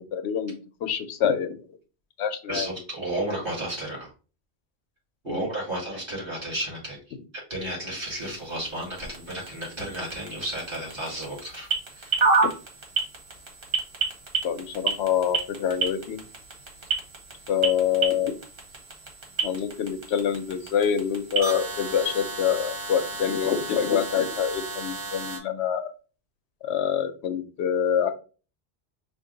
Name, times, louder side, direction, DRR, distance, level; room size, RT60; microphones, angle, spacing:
voice 1, 0.0-1.6 2.2-2.7 5.3-5.5 14.4-16.2 17.5-18.3 19.4-25.9 26.6-28.1, left 8 dB, 90° left, 9 dB, 0.9 m, -26 dB
voice 2, 2.5-4.1 5.2-7.0 7.3-11.7 11.9-12.2, right 1 dB, 40° right, -5 dB, 2.7 m, -32 dB
sound 1, 8.0-25.4, right 4 dB, 60° right, 1.5 m, -31 dB
4.5 x 2.4 x 3.8 m, 0.35 s
omnidirectional pair, 1.1 m